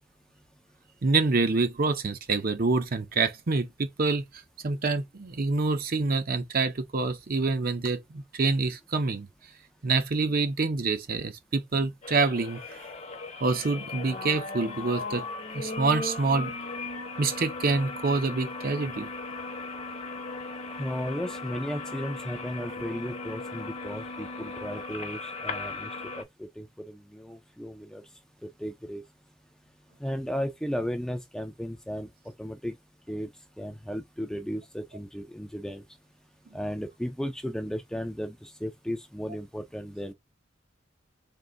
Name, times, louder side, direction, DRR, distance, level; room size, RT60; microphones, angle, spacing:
voice 1, 1.0-4.2 4.6-9.3 9.8-12.6 13.4-15.2 15.5-16.5 17.2-19.1, right 3 dB, 50° right, 0.7 m, -26 dB
sound 1, 12.0-26.2, left 3 dB, 35° left, 0.8 m, -37 dB
voice 2, 20.8-25.9 26.2-28.0 28.4-29.0 30.0-32.1 32.4-32.8 33.1-33.3 33.6-35.8 36.5-40.1, equal, 5° left, 0.4 m, -35 dB
3.7 x 2.6 x 3.8 m
head